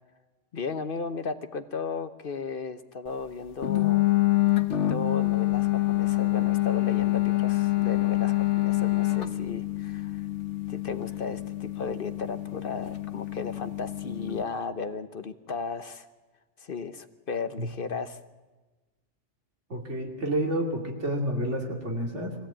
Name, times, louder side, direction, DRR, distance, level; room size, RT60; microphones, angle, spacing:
voice 1, 0.5-4.1 4.9-10.3 10.7-16.1 16.6-18.2, left 4 dB, 50° left, 11 dB, 1.0 m, -35 dB
sound 1, 3.6-14.4, left 17 dB, 75° left, 1.4 m, -26 dB
voice 2, 19.7-22.4, right 1 dB, 75° right, 2 dB, 3.0 m, -29 dB
22.5 x 16.0 x 8.8 m, 1.2 s
omnidirectional pair, 1.2 m